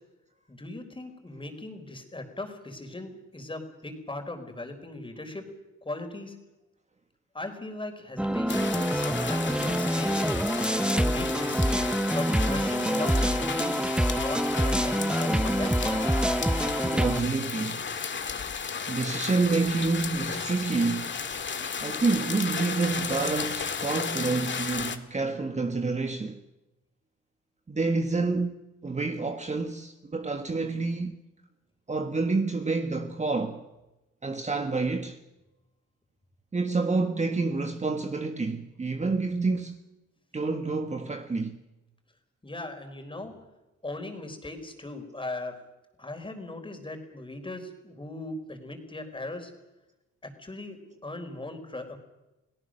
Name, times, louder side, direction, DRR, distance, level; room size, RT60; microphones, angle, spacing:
voice 1, 0.5-5.4 5.8-6.3 7.3-10.4 10.9-11.6 12.1-13.8 14.1-16.1 42.4-43.3 43.8-45.6 46.0-49.5 50.2-52.0, left 2 dB, 15° left, 4.4 m, -38 dB
sound 1, 8.2-17.2, equal, 5° right, 0.9 m, -26 dB
sound 2, 8.5-25.0, left 6 dB, 40° left, 1.8 m, -34 dB
voice 2, 16.7-17.9 18.9-21.2 21.8-26.4 27.7-28.6 28.8-31.2 31.9-33.6 34.2-35.2 36.5-39.8 40.3-41.6, right 3 dB, 25° right, 1.5 m, -28 dB
29.5 x 18.0 x 6.5 m
cardioid pair, 90°, 30 cm